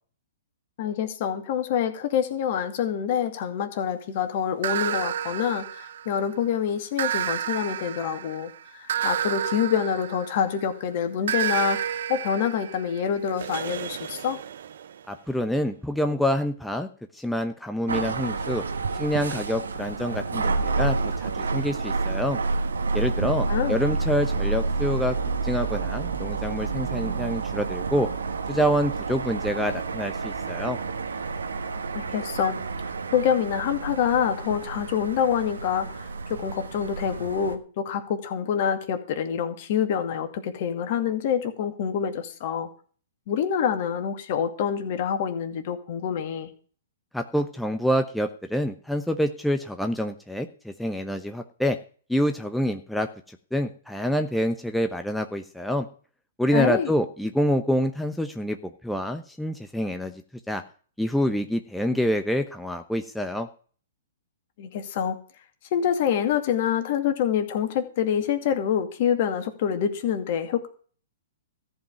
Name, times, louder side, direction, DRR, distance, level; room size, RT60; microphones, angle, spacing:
voice 1, 0.8-14.4 23.5-23.8 31.9-42.7 43.3-46.5 56.5-56.9 64.6-65.2 65.7-70.7, left 8 dB, 50° left, 7 dB, 2.3 m, -26 dB
sound 1, 4.6-6.3 7.0-10.7 11.3-15.0, right 9 dB, 65° right, 0.7 m, -31 dB
voice 2, 15.1-16.9 17.1-18.6 18.9-22.4 22.9-25.2 25.4-28.1 28.5-30.8 47.1-51.8 52.1-55.9 56.4-60.1 60.5-60.6 61.0-63.5, equal, ahead, 5 dB, 0.9 m, -27 dB
sound 2, 17.9-37.6, right 4 dB, 85° right, 1.5 m, -29 dB
14.0 x 5.3 x 9.0 m, 0.43 s
hypercardioid pair, 125°, 0 cm